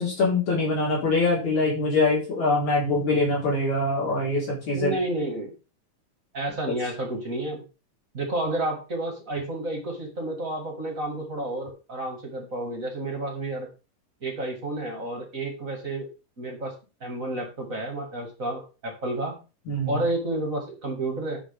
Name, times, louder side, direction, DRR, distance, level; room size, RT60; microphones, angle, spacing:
voice 1, 0.0-4.9 19.7-20.0, left 2 dB, 60° left, -4 dB, 5.4 m, -24 dB
voice 2, 4.7-5.5 6.3-7.6 8.1-13.7 14.2-16.1 16.4-16.7 17.0-19.4 19.9-21.4, right 1 dB, 30° right, 1 dB, 2.0 m, -30 dB
10.5 x 6.9 x 3.5 m, 0.32 s
omnidirectional pair, 3.8 m